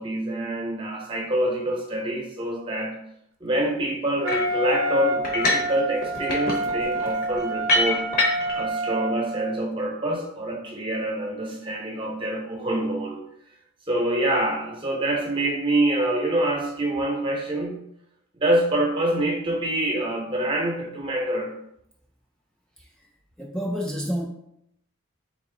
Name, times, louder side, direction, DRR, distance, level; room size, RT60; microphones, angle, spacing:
voice 1, 0.0-2.9 3.4-8.1 8.5-13.2 13.9-17.8 18.4-21.5, right 1 dB, 25° right, 0 dB, 0.8 m, -26 dB
Wind instrument woodwind instrument, 4.2-9.5, right 2 dB, 60° right, 0.5 m, -28 dB
sound 1, 4.3-4.6 5.2-5.7 6.0-8.6, left 2 dB, 40° left, 0.8 m, -25 dB
voice 2, 22.8-23.1 23.4-24.3, equal, 5° left, 0 dB, 0.3 m, -30 dB
3.6 x 2.9 x 3.7 m, 0.76 s
head